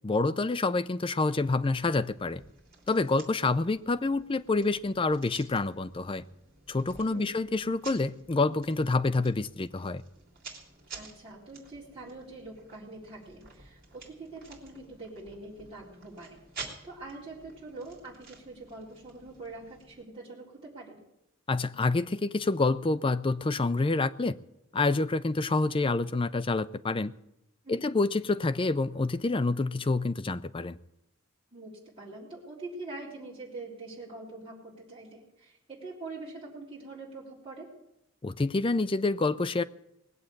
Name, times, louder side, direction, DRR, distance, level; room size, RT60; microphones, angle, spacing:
voice 1, 0.0-2.4 2.9-6.2 6.7-10.0 21.5-24.4 24.7-27.1 27.7-30.8 38.2-39.6, left 3 dB, 25° left, 0.4 m, -27 dB
sound 1, 1.5-20.0, right 4 dB, 45° right, 3.3 m, -51 dB
voice 2, 7.1-7.4 10.9-16.4 16.8-21.0 27.6-27.9 31.5-37.7, right 2 dB, 25° right, 3.8 m, -44 dB
19.5 x 7.8 x 8.5 m
head